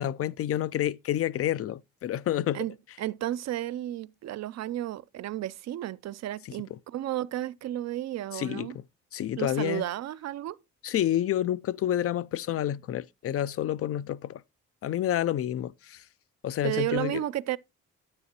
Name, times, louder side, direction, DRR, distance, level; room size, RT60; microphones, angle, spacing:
voice 1, 0.0-2.6 6.4-6.8 8.3-8.8 9.1-9.8 10.8-14.4 14.8-16.1 16.4-17.2, left 11 dB, 50° left, 0.4 m, -29 dB
voice 2, 3.0-8.8 9.4-10.6 16.6-17.6, right 13 dB, 60° right, 0.5 m, -32 dB
9.7 x 9.6 x 2.9 m
cardioid pair, 90°, 30 cm